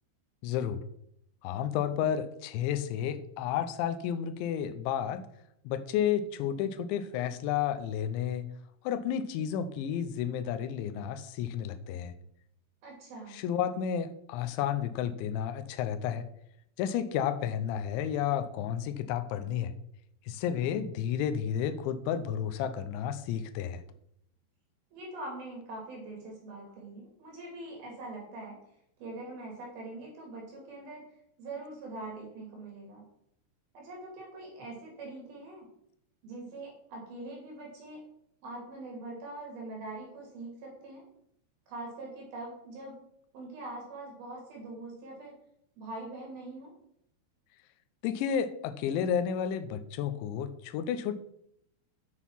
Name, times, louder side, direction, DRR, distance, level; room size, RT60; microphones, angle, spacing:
voice 1, 0.4-0.8 1.4-5.3 5.7-8.5 8.8-12.1 13.3-16.3 16.8-19.7 20.3-23.8 48.0-51.1, left 9 dB, 80° left, 8 dB, 2.9 m, -31 dB
voice 2, 12.8-13.4 24.9-28.6 29.0-31.0 31.4-33.0 33.7-35.7 36.2-38.0 38.4-41.0 41.7-43.0 43.3-45.3 45.8-46.7, right 2 dB, 55° right, -1 dB, 4.4 m, -43 dB
9.1 x 6.4 x 5.7 m, 0.74 s
omnidirectional pair, 5.6 m